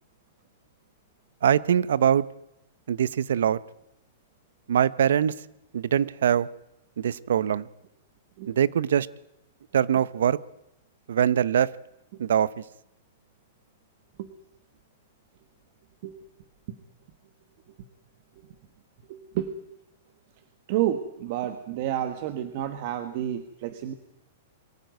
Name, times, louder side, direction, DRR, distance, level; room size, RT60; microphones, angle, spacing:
voice 1, 1.4-2.3 2.9-3.6 4.7-5.3 5.7-6.5 7.0-7.7 8.5-9.1 9.7-10.4 11.1-11.7 12.2-12.6, right 9 dB, 80° right, 20 dB, 0.9 m, -22 dB
voice 2, 19.1-19.5 20.7-23.9, right 12 dB, 45° right, 9 dB, 1.4 m, -30 dB
23.0 x 14.5 x 9.5 m, 0.85 s
hypercardioid pair, 160°, 0 cm